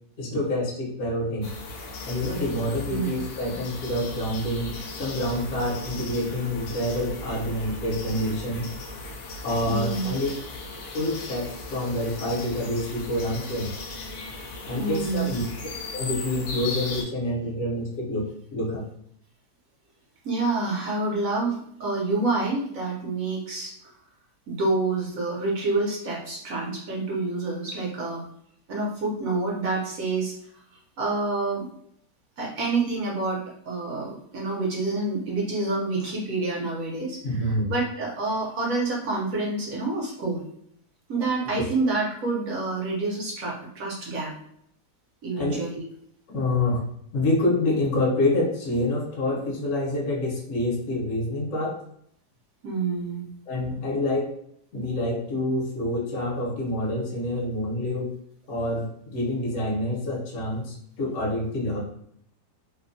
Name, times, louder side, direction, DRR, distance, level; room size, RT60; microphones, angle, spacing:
voice 1, 0.2-1.5 2.0-8.7 9.4-10.3 10.9-13.7 14.7-15.4 15.9-18.8 37.2-37.7 41.6-41.7 45.4-45.5 46.3-46.8 47.1-51.8 53.5-54.3 54.7-58.1 58.5-61.8, left 1 dB, 55° left, -2 dB, 1.0 m, -27 dB
sound 1, 1.4-17.0, left 3 dB, 75° left, 0.7 m, -37 dB
voice 2, 2.8-3.2 9.7-10.2 14.8-15.3 20.2-23.7 24.5-28.2 28.7-30.3 31.0-31.7 32.4-40.4 41.1-44.3 45.2-45.8 52.6-53.3, right 3 dB, 65° right, -3 dB, 1.0 m, -28 dB
2.9 x 2.1 x 2.5 m, 0.69 s
omnidirectional pair, 1.8 m